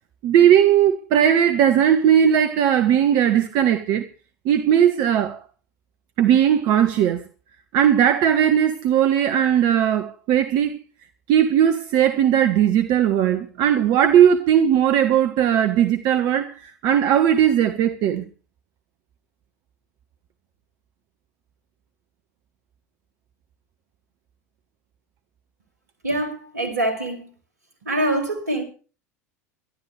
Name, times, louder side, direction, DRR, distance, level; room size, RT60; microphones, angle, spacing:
voice 1, 0.2-4.1 4.4-5.4 6.2-7.2 7.7-10.8 11.3-18.2, right 9 dB, 50° right, 1.5 m, -18 dB
voice 2, 26.0-27.3 27.8-28.6, right 1 dB, 80° right, 5.5 m, -24 dB
23.5 x 13.0 x 3.4 m
figure-of-eight pair, 80°, 9 cm